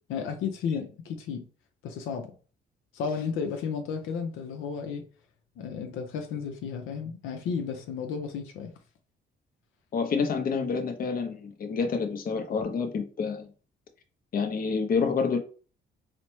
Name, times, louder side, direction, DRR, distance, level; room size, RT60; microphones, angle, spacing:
voice 1, 0.1-1.4 1.8-2.3 2.9-5.0 5.6-8.7, left 6 dB, 85° left, 0.6 m, -33 dB
voice 2, 9.9-13.5 14.3-15.4, left 5 dB, 45° left, 0.7 m, -28 dB
4.1 x 2.1 x 3.1 m
cardioid pair, 90°, 20 cm